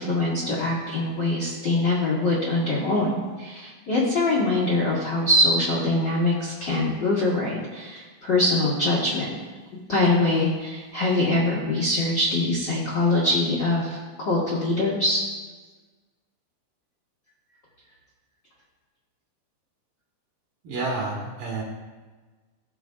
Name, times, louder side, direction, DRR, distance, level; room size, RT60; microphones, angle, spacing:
voice 1, 0.0-9.3 9.9-15.2, left 2 dB, 45° left, -6 dB, 1.4 m, -23 dB
voice 2, 20.6-21.6, right 3 dB, 60° right, -3 dB, 2.8 m, -29 dB
16.5 x 7.9 x 2.4 m, 1.3 s
omnidirectional pair, 5.0 m